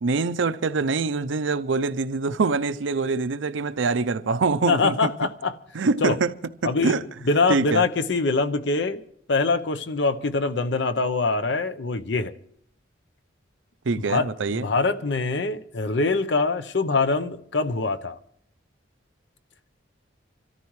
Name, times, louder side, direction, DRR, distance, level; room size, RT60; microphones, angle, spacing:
voice 1, 0.0-5.1 5.7-6.3 6.6-7.0 7.5-7.8 13.9-14.7, right 4 dB, 80° right, 0.6 m, -24 dB
voice 2, 4.7-5.5 6.0-6.2 6.6-7.0 7.3-9.0 9.3-12.3 14.0-18.2, left 3 dB, 65° left, 0.7 m, -24 dB
26.5 x 14.0 x 3.2 m
head